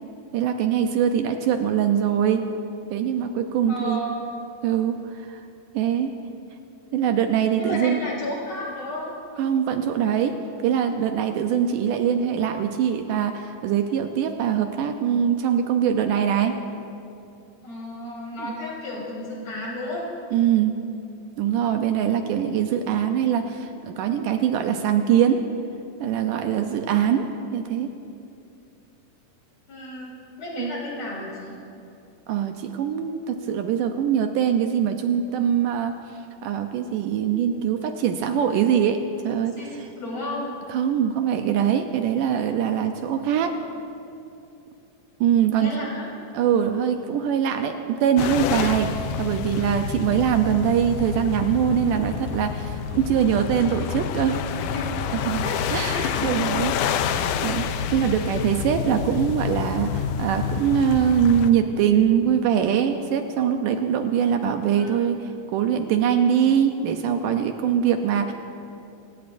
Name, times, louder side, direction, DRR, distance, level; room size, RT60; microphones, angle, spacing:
voice 1, 0.3-2.5 2.9-4.0 4.6-5.4 5.7-6.1 6.9-8.0 9.4-10.3 10.6-16.6 18.4-18.5 20.3-20.8 21.4-25.4 26.0-27.9 30.6-30.7 32.3-35.9 36.4-39.5 40.7-43.6 45.2-45.7 46.3-54.4 55.1-55.4 55.7-56.7 57.4-57.7 57.9-68.3, right 8 dB, 80° right, 6 dB, 2.1 m, -23 dB
voice 2, 3.7-4.2 7.6-9.1 17.6-20.1 29.7-31.5 39.6-40.5 45.5-46.1 54.7-55.0 55.4-55.6 55.9-56.5 64.7-65.0, left 1 dB, 45° left, -4 dB, 4.8 m, -33 dB
sound 1, 48.2-61.5, left 7 dB, 75° left, 2.1 m, -28 dB
28.5 x 17.0 x 2.6 m, 2.6 s
omnidirectional pair, 4.0 m